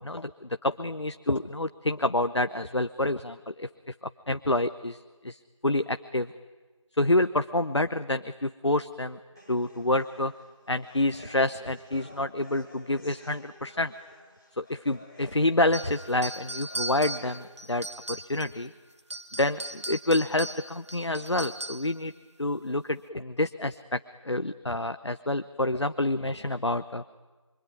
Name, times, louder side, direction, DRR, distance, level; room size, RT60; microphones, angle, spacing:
voice 1, 0.0-5.0 5.2-6.3 7.0-9.2 9.5-10.3 10.7-13.9 14.6-18.7 19.4-22.1 22.4-24.0 24.2-27.0, left 1 dB, 60° left, 10 dB, 0.9 m, -28 dB
sound 1, 9.4-17.3, left 1 dB, 5° left, 1.6 m, -53 dB
sound 2, 15.7-18.6 19.0-22.0, right 1 dB, 60° right, 1.7 m, -38 dB
25.0 x 24.5 x 9.6 m, 1.3 s
figure-of-eight pair, 175°, 16 cm